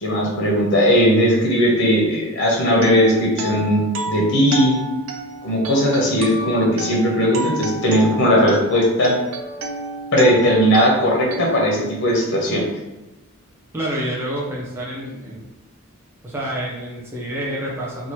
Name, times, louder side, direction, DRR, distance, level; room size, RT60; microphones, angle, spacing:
voice 1, 0.0-4.7 5.4-9.2 10.1-12.7, equal, 55° left, -1 dB, 0.7 m, -18 dB
sound 1, 2.7-12.6, right 2 dB, 70° right, 0.4 m, -31 dB
voice 2, 13.7-15.4 16.2-18.1, right 1 dB, 10° right, -5 dB, 0.4 m, -28 dB
2.8 x 2.3 x 3.0 m, 1.0 s
head